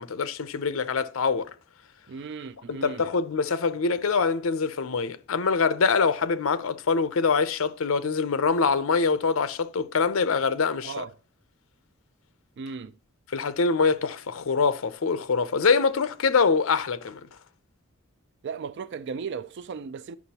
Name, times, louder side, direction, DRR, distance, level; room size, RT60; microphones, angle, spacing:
voice 1, 0.0-1.5 2.7-11.0 13.3-17.2, left 5 dB, 75° left, 0.6 m, -24 dB
voice 2, 2.1-3.0 10.8-11.1 12.6-12.9 18.4-20.2, right 5 dB, 55° right, 0.3 m, -36 dB
9.5 x 5.9 x 2.8 m
head